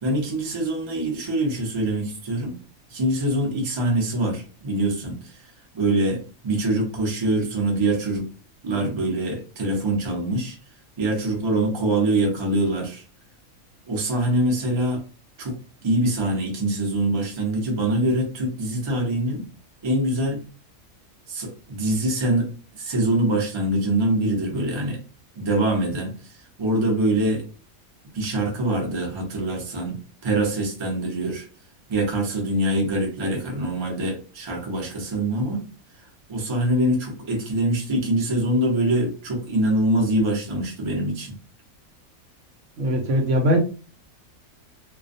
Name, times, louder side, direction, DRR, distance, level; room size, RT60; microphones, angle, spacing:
voice 1, 0.0-2.5 2.9-5.4 5.7-8.2 8.6-10.6 11.0-13.0 13.9-15.0 15.4-15.5 15.8-19.4 19.8-20.4 21.3-25.0 25.4-27.4 28.1-30.0 30.2-31.5 31.9-35.6 36.0-41.3, right 1 dB, 35° right, 0 dB, 0.4 m, -24 dB
voice 2, 42.8-43.6, equal, 65° right, 2 dB, 0.9 m, -20 dB
2.3 x 2.1 x 2.5 m, 0.35 s
omnidirectional pair, 1.5 m